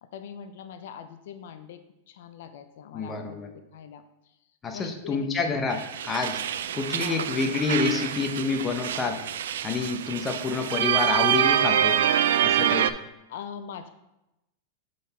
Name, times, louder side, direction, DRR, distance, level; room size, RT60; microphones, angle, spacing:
voice 1, 0.0-4.4 4.7-5.3 7.0-7.3 13.3-13.9, left 7 dB, 70° left, 10 dB, 0.4 m, -42 dB
voice 2, 2.9-3.5 4.6-6.4 6.7-9.2 9.6-12.0 12.4-12.9, left 4 dB, 15° left, 4 dB, 0.7 m, -28 dB
sound 1, 5.7-12.9, right 10 dB, 90° right, 0.3 m, -26 dB
7.6 x 3.9 x 4.1 m, 0.92 s
supercardioid pair, 160°, 0 cm